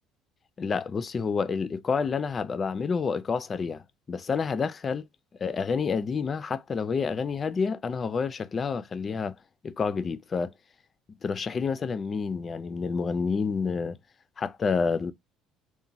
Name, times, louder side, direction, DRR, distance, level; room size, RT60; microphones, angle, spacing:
voice 1, 0.6-5.0 5.4-9.3 9.6-10.5 11.2-14.0 14.4-15.1, left 5 dB, 35° left, 0.3 m, -29 dB
2.9 x 2.1 x 2.6 m
supercardioid pair, 95°, 0 cm